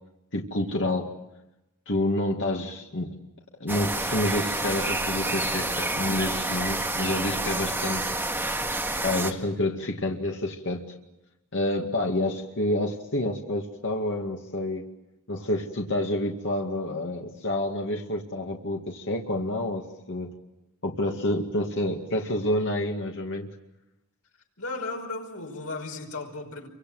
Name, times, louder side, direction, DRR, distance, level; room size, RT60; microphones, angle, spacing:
voice 1, 0.3-1.1 1.9-3.2 3.6-8.1 9.0-10.9 11.5-14.8 15.3-20.3 20.8-23.5, left 1 dB, 60° left, 2.2 m, -28 dB
sound 1, 3.7-9.3, right 2 dB, 10° right, 2.0 m, -28 dB
voice 2, 24.6-26.7, left 3 dB, 75° left, 5.5 m, -35 dB
29.0 x 25.0 x 7.9 m
head